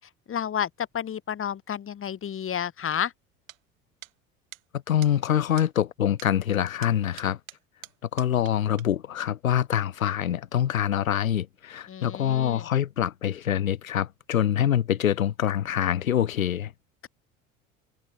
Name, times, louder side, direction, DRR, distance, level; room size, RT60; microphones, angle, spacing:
voice 1, 0.3-3.1 11.9-12.7, left 9 dB, 30° left, 2.2 m, -31 dB
sound 1, 3.5-3.6 4.0-4.1 4.5-4.6 5.0-5.1 5.6-5.7 6.2-6.3 6.8-8.5 8.8-8.9, right 15 dB, 75° right, 1.7 m, -45 dB
voice 2, 4.9-7.4 8.1-16.7, left 10 dB, 85° left, 1.0 m, -25 dB
figure-of-eight pair, 70°, 40 cm